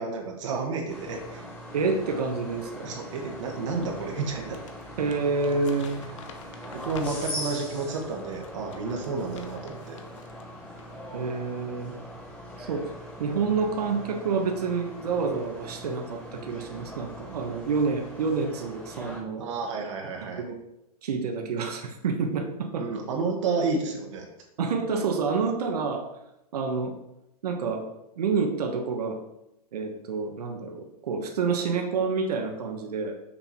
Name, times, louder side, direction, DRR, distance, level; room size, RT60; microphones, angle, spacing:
voice 1, 0.0-1.4 2.8-4.6 6.6-10.0 19.4-20.4 22.8-24.2, right 4 dB, 50° right, 1 dB, 1.3 m, -31 dB
sound 1, 0.9-19.2, equal, 5° left, 1.1 m, -41 dB
voice 2, 1.7-2.9 5.0-6.0 11.1-12.0 12.6-12.9 13.2-19.4 20.4-20.5 21.0-22.9 24.6-26.1 26.5-27.0 27.4-27.9 28.2-29.2 29.7-33.1, right 4 dB, 85° right, 3 dB, 1.3 m, -28 dB
Crumpling crinkling, 4.4-7.6 8.2-10.5 10.7-11.0, left 6 dB, 50° left, 1.0 m, -49 dB
6.7 x 5.7 x 4.4 m, 0.86 s
supercardioid pair, 175°, 20 cm